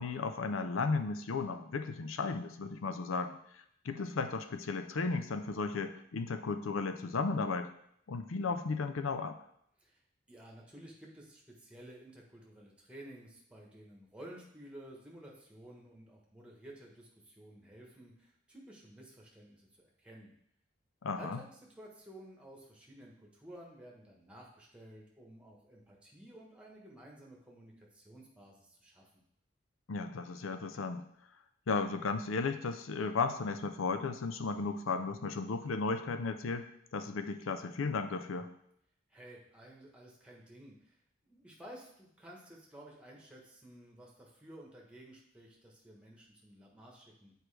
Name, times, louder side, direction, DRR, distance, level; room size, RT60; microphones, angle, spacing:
voice 1, 0.0-7.7 8.1-9.4 21.0-21.4 29.9-31.0 31.7-36.7 36.9-38.5, left 4 dB, 85° left, 9 dB, 0.5 m, -35 dB
voice 2, 10.3-20.3 21.1-29.1 39.1-47.3, right 1 dB, 5° right, -2 dB, 1.2 m, -53 dB
7.9 x 4.6 x 3.3 m, 0.72 s
head